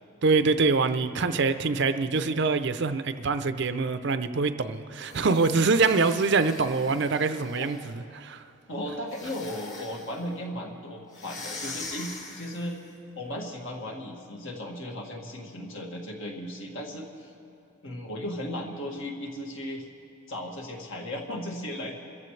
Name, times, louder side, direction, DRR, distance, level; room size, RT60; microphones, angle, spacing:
voice 1, 0.2-7.8 8.1-8.4, right 4 dB, 55° right, 10 dB, 0.6 m, -24 dB
sound 1, 5.0-8.0 9.1-10.2 11.1-12.8, left 3 dB, 35° left, 1.8 m, -43 dB
voice 2, 8.7-12.8 13.2-17.3 17.8-19.8 20.3-22.0, left 1 dB, 60° left, 0 dB, 2.1 m, -36 dB
28.0 x 14.5 x 3.3 m, 2.8 s
head